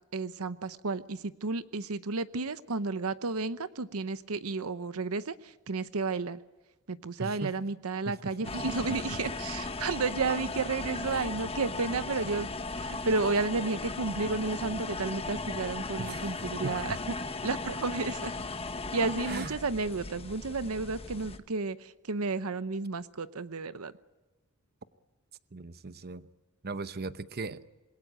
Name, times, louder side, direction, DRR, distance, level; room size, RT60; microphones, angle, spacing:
voice 1, 0.1-6.4 6.9-17.1 17.4-18.4 18.9-23.9, right 3 dB, 75° right, 0.9 m, -32 dB
voice 2, 7.2-7.6 8.1-9.2 11.1-11.2 16.0-17.0 19.3-19.6 25.5-26.3 26.6-27.6, right 3 dB, 45° right, 0.9 m, -39 dB
sound 1, 8.4-21.4, left 3 dB, 25° left, 1.3 m, -37 dB
27.0 x 21.0 x 9.1 m
head